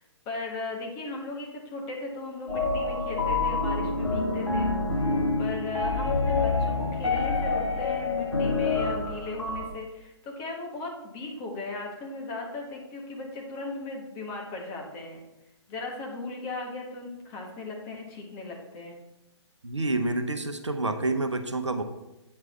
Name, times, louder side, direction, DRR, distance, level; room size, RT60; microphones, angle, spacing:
voice 1, 0.0-4.7 5.0-5.1 5.4-15.2 15.7-19.0, left 3 dB, 20° left, 0 dB, 1.4 m, -37 dB
sound 1, 2.5-9.7, left 3 dB, 80° left, 1.5 m, -27 dB
voice 2, 19.6-21.8, right 2 dB, 80° right, 7 dB, 0.8 m, -28 dB
8.6 x 4.7 x 4.3 m, 0.96 s
figure-of-eight pair, 130°, 15 cm